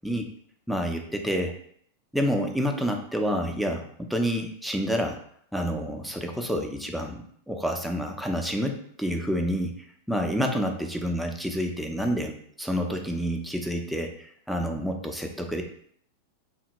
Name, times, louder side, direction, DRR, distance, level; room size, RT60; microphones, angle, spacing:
voice 1, 0.7-1.5 2.1-5.2 5.5-9.7 10.1-15.6, equal, ahead, 2 dB, 0.5 m, -28 dB
3.4 x 2.1 x 3.0 m, 0.63 s
hypercardioid pair, 120°, 0 cm